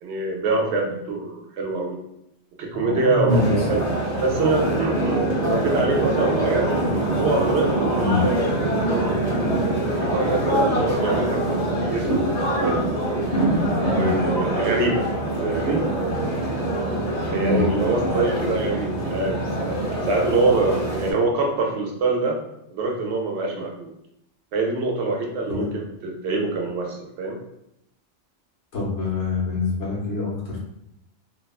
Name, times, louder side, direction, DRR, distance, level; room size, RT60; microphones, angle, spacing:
voice 1, 0.0-2.0 2.6-3.8 4.2-6.7 7.1-8.8 9.7-11.5 11.8-12.3 12.6-12.8 14.0-15.1 15.4-15.9 17.3-19.8 20.0-22.4 22.7-23.9 24.5-27.4, right 3 dB, 70° right, 1 dB, 0.8 m, -25 dB
voice 2, 2.7-3.6 7.9-8.2 13.8-14.1 17.4-17.6 25.5-25.7 28.7-30.6, left 4 dB, 80° left, -5 dB, 1.2 m, -25 dB
sound 1, 3.3-21.1, right 1 dB, 45° left, 0.5 m, -24 dB
2.8 x 2.2 x 2.3 m, 0.80 s
omnidirectional pair, 1.2 m